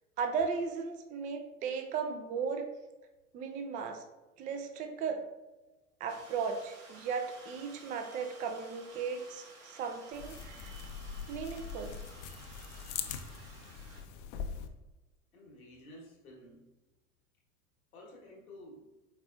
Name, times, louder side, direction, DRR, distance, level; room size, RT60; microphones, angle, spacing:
voice 1, 0.2-2.7 3.3-4.0 4.4-5.2 6.0-10.7 11.3-12.0, right 5 dB, 20° right, 5 dB, 0.3 m, -36 dB
sound 1, 6.1-14.0, right 3 dB, 35° right, 1.2 m, -54 dB
sound 2, 10.1-14.7, left 7 dB, 60° left, 0.6 m, -42 dB
voice 2, 15.3-16.7 17.9-18.9, left 1 dB, 80° left, -2 dB, 1.2 m, -52 dB
4.7 x 4.2 x 2.3 m, 1.1 s
hypercardioid pair, 80°, 42 cm